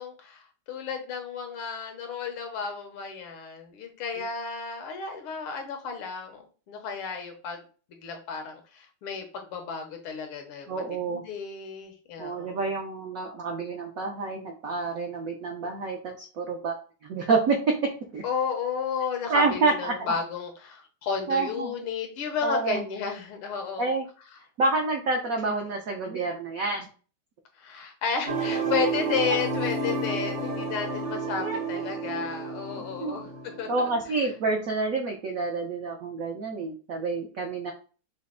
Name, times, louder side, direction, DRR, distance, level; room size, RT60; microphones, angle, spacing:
voice 1, 0.0-6.4 6.7-7.6 8.0-12.7 18.2-24.0 27.6-33.3 33.6-33.9, left 6 dB, 85° left, 4 dB, 1.8 m, -33 dB
voice 2, 10.7-11.2 12.2-16.8 17.0-17.7 18.1-18.2 19.3-20.1 21.3-21.8 22.4-22.8 23.8-24.1 24.6-26.9 31.4-31.6 32.8-33.2 33.7-37.7, right 3 dB, 75° right, 1 dB, 0.8 m, -28 dB
sound 1, 28.3-34.1, right 4 dB, 50° right, 0.8 m, -31 dB
5.6 x 2.0 x 3.7 m, 0.37 s
omnidirectional pair, 2.3 m